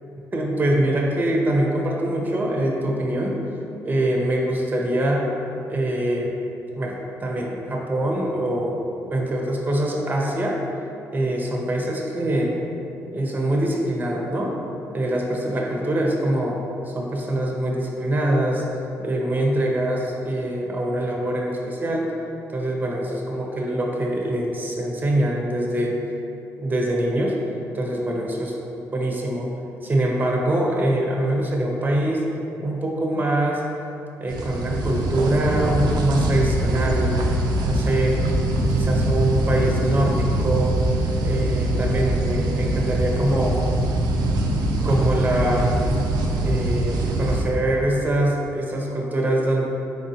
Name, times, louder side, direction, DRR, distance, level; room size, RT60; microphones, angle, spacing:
voice 1, 0.3-3.4 3.8-5.2 5.7-6.3 6.8-8.7 9.1-10.6 11.1-12.5 13.1-14.5 14.9-16.6 16.9-18.6 19.0-22.1 22.5-25.9 26.6-27.4 27.7-28.6 28.9-29.5 29.8-32.2 32.6-33.6 34.2-37.2 37.6-38.2 38.5-40.8 41.2-43.6 44.8-45.7 46.4-49.6, right 1 dB, 25° right, -1 dB, 0.6 m, -23 dB
sound 1, 34.3-47.4, right 1 dB, 75° right, 0.4 m, -23 dB
3.7 x 3.5 x 2.7 m, 2.8 s
supercardioid pair, 65°, 7 cm